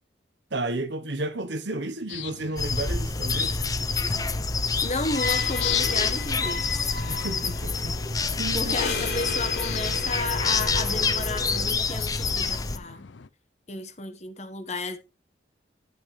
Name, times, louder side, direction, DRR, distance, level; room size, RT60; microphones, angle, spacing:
voice 1, 0.5-3.5 7.0-8.0 8.4-8.7, right 2 dB, 75° right, 1.2 m, -32 dB
sound 1, 2.1-13.3, left 9 dB, 85° left, 0.6 m, -40 dB
sound 2, 2.6-12.8, left 4 dB, 20° left, 0.8 m, -27 dB
sound 3, 4.6-11.7, left 4 dB, 60° left, 3.5 m, -35 dB
voice 2, 4.8-6.9 8.5-13.1 13.7-15.0, left 3 dB, 35° left, 1.4 m, -33 dB
12.5 x 8.4 x 3.4 m
head